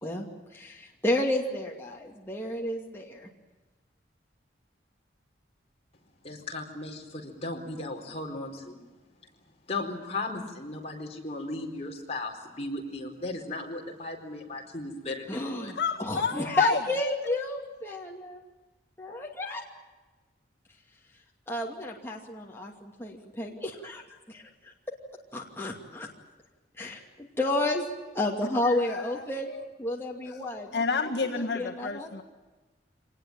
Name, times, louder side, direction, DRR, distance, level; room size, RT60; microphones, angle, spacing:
voice 1, 0.0-3.3 15.3-18.4 19.0-19.6 21.5-24.0 24.3-24.7 25.3-26.1 26.8-27.8 28.1-29.5 29.8-30.8 31.2-32.1, left 1 dB, 10° left, -1 dB, 2.6 m, -31 dB
voice 2, 6.2-8.8 9.7-15.7, left 2 dB, 35° left, 1 dB, 4.3 m, -36 dB
voice 3, 15.8-16.8 28.6-29.6 30.2-32.2, left 5 dB, 60° left, 1 dB, 1.7 m, -31 dB
25.0 x 19.5 x 9.0 m, 1.2 s
head